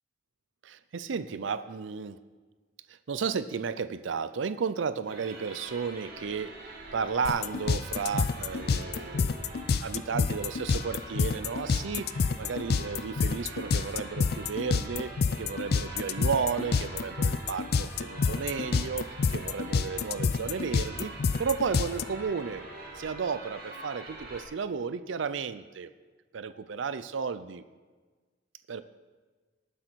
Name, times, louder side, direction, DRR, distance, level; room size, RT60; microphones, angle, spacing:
voice 1, 0.6-2.2 2.9-6.6 6.9-21.1 21.4-22.7 23.0-25.9 26.3-27.6 28.7-28.8, right 5 dB, 85° right, 13 dB, 0.5 m, -33 dB
sound 1, 5.1-24.4, right 2 dB, 50° right, 2.6 m, -44 dB
sound 2, 7.2-22.0, left 5 dB, 55° left, 0.4 m, -27 dB
18.5 x 7.8 x 4.6 m, 1.4 s
head